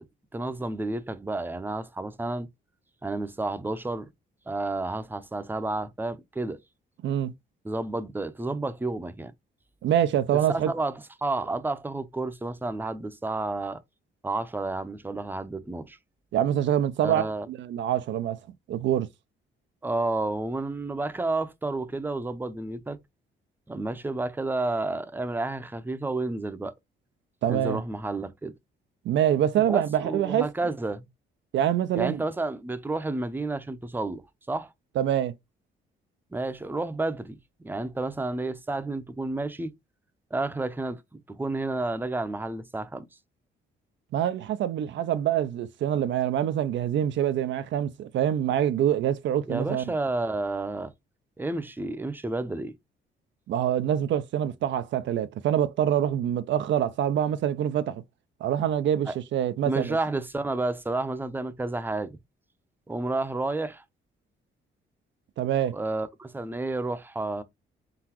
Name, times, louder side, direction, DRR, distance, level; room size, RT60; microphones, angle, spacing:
voice 1, 0.3-2.5 3.0-4.1 4.5-6.6 7.6-9.3 10.5-13.8 14.2-16.0 17.0-17.5 19.8-23.0 23.7-26.7 27.5-28.5 29.6-31.1 32.0-34.7 36.3-37.4 37.6-39.7 40.3-41.0 41.3-43.1 49.5-50.9 51.4-52.7 59.1-59.2 59.7-62.2 62.9-63.8 65.7-67.4, right 2 dB, 10° right, 0.6 m, -31 dB
voice 2, 7.0-7.3 9.8-10.7 16.3-18.4 18.7-19.1 27.4-27.8 29.0-30.5 31.5-32.2 35.0-35.3 44.1-49.8 53.5-58.0 58.4-60.0 65.4-65.7, right 10 dB, 70° right, 0.5 m, -25 dB
3.9 x 3.7 x 2.9 m
cardioid pair, 90°, 20 cm